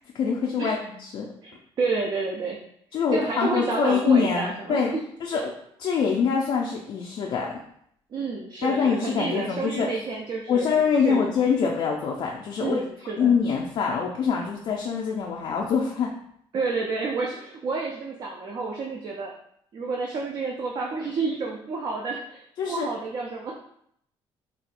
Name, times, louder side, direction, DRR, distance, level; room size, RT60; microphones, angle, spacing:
voice 1, 0.1-1.3 2.9-4.9 5.2-5.5 5.8-7.5 8.6-9.9 10.5-12.8 13.2-16.1 22.6-22.9, left 6 dB, 55° left, -1 dB, 0.4 m, -24 dB
voice 2, 1.4-2.6 3.1-5.0 5.3-5.4 8.1-10.8 11.0-11.2 12.6-13.3 16.5-19.3 19.7-23.5, right 4 dB, 45° right, -1 dB, 0.4 m, -30 dB
4.2 x 2.2 x 2.5 m, 0.70 s
cardioid pair, 135°, 10 cm